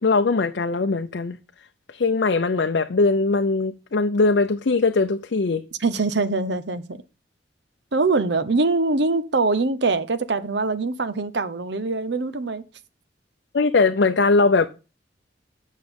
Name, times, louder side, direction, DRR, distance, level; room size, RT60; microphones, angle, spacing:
voice 1, 0.0-1.4 1.9-5.6 13.5-14.7, left 3 dB, 65° left, 0.5 m, -20 dB
voice 2, 5.8-7.0 7.9-12.6, right 3 dB, 65° right, 0.8 m, -23 dB
9.1 x 6.4 x 5.2 m
head